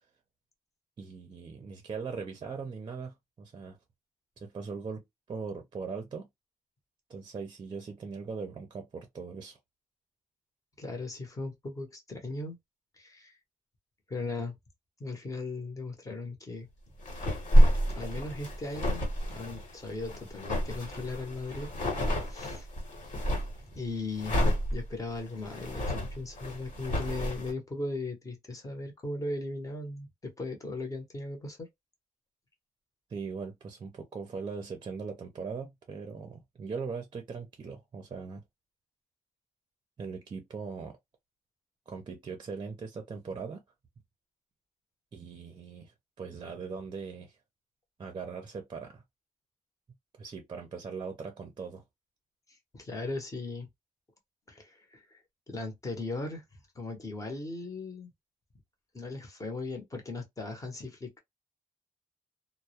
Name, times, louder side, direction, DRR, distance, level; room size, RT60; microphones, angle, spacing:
voice 1, 1.0-3.8 4.4-6.3 7.1-9.6 33.1-38.4 40.0-41.0 41.9-43.6 45.1-45.9 46.2-47.4 48.0-49.0 50.2-51.8, right 5 dB, 35° right, 0.5 m, -40 dB
voice 2, 10.8-12.6 13.0-13.4 14.1-14.5 15.0-16.7 17.9-21.7 22.3-22.7 23.7-24.4 24.7-31.7 52.7-53.7 54.5-55.2 55.5-56.4 56.7-58.1 58.9-61.2, left 2 dB, 25° left, 0.8 m, -38 dB
sound 1, 17.0-23.6 24.1-27.5, equal, 75° left, 1.1 m, -28 dB
2.2 x 2.0 x 2.7 m
wide cardioid pair, 160°, 13 cm